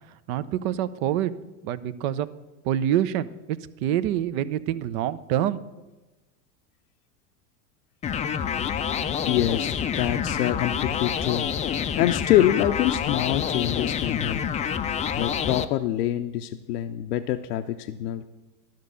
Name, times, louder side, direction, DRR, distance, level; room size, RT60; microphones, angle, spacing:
voice 1, 0.3-1.3 1.6-2.3 2.6-5.6, right 11 dB, 65° right, 16 dB, 0.7 m, -26 dB
sound 1, 8.0-15.6, left 8 dB, 20° left, 0.3 m, -27 dB
voice 2, 8.9-11.5 12.0-14.4 15.2-18.2, left 12 dB, 85° left, 7 dB, 0.6 m, -25 dB
12.0 x 5.2 x 6.8 m, 1.1 s
hypercardioid pair, 90°, 45 cm